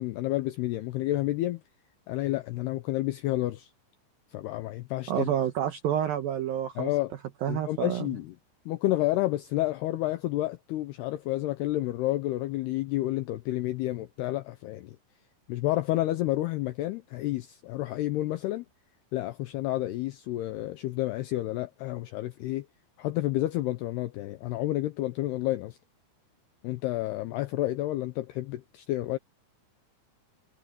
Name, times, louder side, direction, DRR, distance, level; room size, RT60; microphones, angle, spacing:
voice 1, 0.0-1.6 2.1-3.7 4.3-5.3 6.8-7.1 7.5-8.3 8.7-15.0 15.5-18.7 19.1-22.7 23.0-25.8 26.6-29.2, left 16 dB, 85° left, 2.3 m, -30 dB
voice 2, 5.1-6.9 7.4-8.1, right 10 dB, 80° right, 2.1 m, -29 dB
omnidirectional pair, 5.6 m